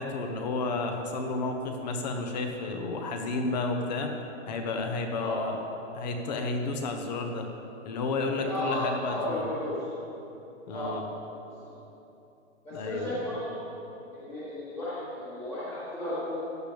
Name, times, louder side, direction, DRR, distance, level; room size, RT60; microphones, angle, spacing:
voice 1, 0.0-4.1 4.5-5.6 5.9-7.4 7.8-9.4 10.7-11.0 12.7-13.3, left 3 dB, 35° left, 4 dB, 1.0 m, -31 dB
voice 2, 8.3-9.7 10.7-10.9 11.5-11.7 12.6-13.6 14.1-16.4, left 1 dB, 5° left, -11 dB, 1.5 m, -34 dB
15.0 x 10.5 x 3.4 m, 2.9 s
hypercardioid pair, 170°, 38 cm